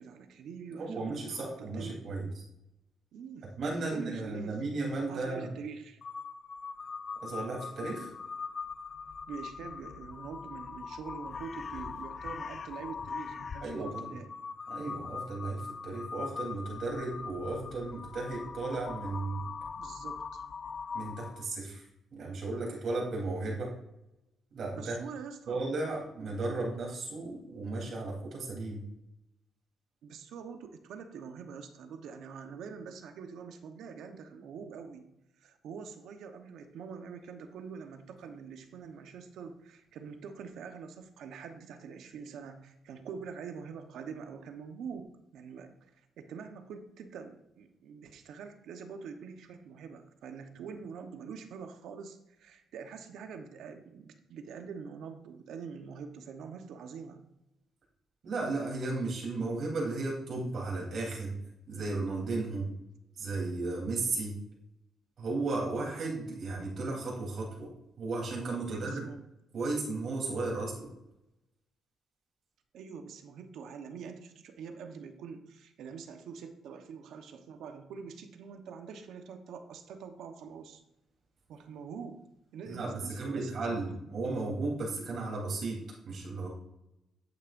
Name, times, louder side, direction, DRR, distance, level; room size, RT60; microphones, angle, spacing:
voice 1, 0.0-2.0 3.1-4.6 5.0-6.0 9.3-14.4 19.8-20.4 24.8-25.6 30.0-35.0 35.4-45.1 45.3-45.9 46.2-57.2 68.7-69.2 72.7-80.8 81.5-82.2 82.5-83.8, right 6 dB, 75° right, 7 dB, 1.1 m, -45 dB
voice 2, 0.8-2.4 3.6-5.5 7.2-8.1 13.6-14.1 14.7-19.4 20.9-21.8 22.1-23.7 24.5-25.0 25.5-28.8 58.2-61.4 61.7-62.7 63.2-64.4 65.2-67.7 68.0-69.0 69.5-70.9 82.7-86.5, right 3 dB, 55° right, -2 dB, 3.6 m, -35 dB
Crow, 6.0-21.5, left 5 dB, 40° left, 0.6 m, -41 dB
10.5 x 8.8 x 2.6 m, 0.87 s
cardioid pair, 105°, 0 cm